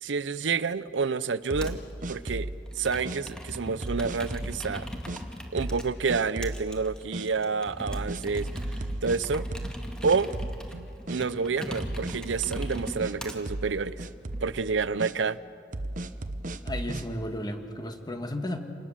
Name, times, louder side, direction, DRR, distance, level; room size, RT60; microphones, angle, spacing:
voice 1, 0.0-1.8 2.1-2.5 2.8-4.9 5.5-8.5 9.0-9.5 10.0-10.3 10.7-14.1 14.4-15.4, right 5 dB, 90° right, 17 dB, 0.6 m, -29 dB
sound 1, 1.5-2.6 3.0-3.2 3.8-4.6 5.1-5.2 5.6-5.8 6.1-6.6 7.1-7.3 7.9-9.8 10.0-10.8 11.1-11.2 11.8-13.1 13.5-13.7 14.0-14.5 15.0-15.1 15.7-17.0, right 1 dB, 45° right, 0.9 m, -34 dB
Computer keyboard, 1.6-1.9 2.7-5.9 6.4-13.4 14.0-14.6, equal, 5° left, 2.2 m, -40 dB
voice 2, 16.6-18.6, left 1 dB, 20° left, 5 dB, 1.8 m, -34 dB
27.5 x 20.0 x 7.4 m, 2.6 s
head